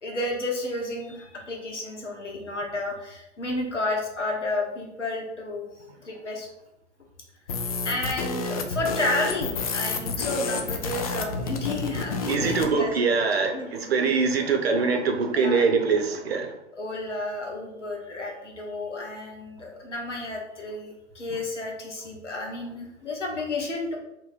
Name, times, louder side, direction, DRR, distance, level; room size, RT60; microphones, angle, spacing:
voice 1, 0.0-5.6 6.0-6.5 7.8-13.2 13.4-14.0 15.3-15.6 16.7-24.0, left 2 dB, 75° left, -1 dB, 1.3 m, -31 dB
sound 1, 7.5-12.7, left 3 dB, 35° left, 0.4 m, -30 dB
voice 2, 12.3-16.5, right 4 dB, 60° right, 4 dB, 0.8 m, -23 dB
3.1 x 3.0 x 4.2 m, 0.89 s
figure-of-eight pair, 110°, 36 cm